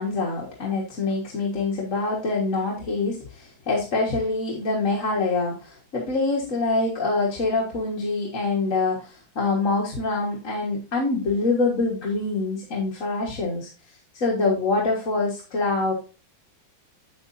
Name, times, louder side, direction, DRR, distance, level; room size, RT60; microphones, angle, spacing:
voice 1, 0.0-13.7 14.1-15.9, left 3 dB, 45° left, -3 dB, 1.8 m, -25 dB
8.0 x 7.9 x 2.6 m, 0.33 s
omnidirectional pair, 2.1 m